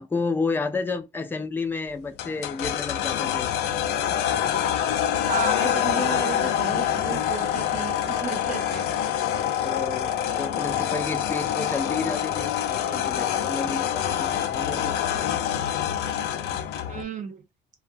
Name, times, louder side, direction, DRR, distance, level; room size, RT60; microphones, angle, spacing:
voice 1, 0.0-3.5 9.6-15.1, left 4 dB, 10° left, 0.4 m, -31 dB
sound 1, 2.2-17.0, left 10 dB, 75° left, 0.5 m, -26 dB
voice 2, 5.3-8.9 16.9-17.4, right 6 dB, 50° right, 0.8 m, -33 dB
2.6 x 2.2 x 2.6 m
cardioid pair, 110°, 17 cm